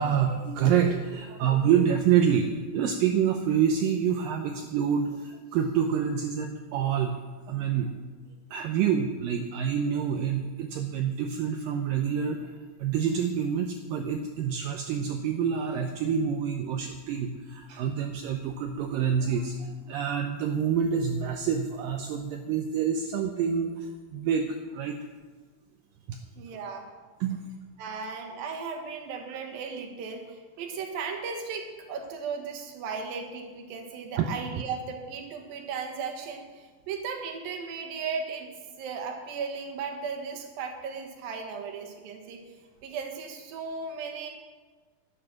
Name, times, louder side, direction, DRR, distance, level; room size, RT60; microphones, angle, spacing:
voice 1, 0.0-7.2 7.5-8.0 8.5-25.0 26.1-26.2 27.2-27.4 34.2-34.3, right 7 dB, 85° right, 5 dB, 2.0 m, -27 dB
voice 2, 26.4-26.9 27.8-38.5 38.8-42.4 42.8-44.3, right 5 dB, 65° right, 3 dB, 3.0 m, -36 dB
12.0 x 10.0 x 6.4 m, 1.4 s
omnidirectional pair, 4.8 m